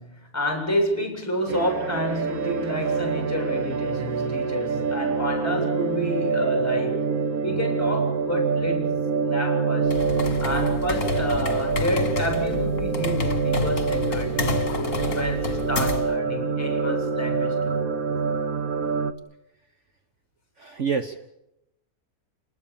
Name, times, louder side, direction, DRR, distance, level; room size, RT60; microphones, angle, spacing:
voice 1, 0.0-7.1 7.4-10.0 10.4-17.9, equal, 10° left, 7.7 m, -29 dB
sound 1, 1.5-19.1, right 5 dB, 70° right, 1.7 m, -26 dB
sound 2, 9.8-16.2, left 6 dB, 60° left, 2.2 m, -30 dB
voice 2, 20.6-21.2, right 5 dB, 55° right, 1.6 m, -27 dB
30.0 x 20.0 x 7.3 m
omnidirectional pair, 1.6 m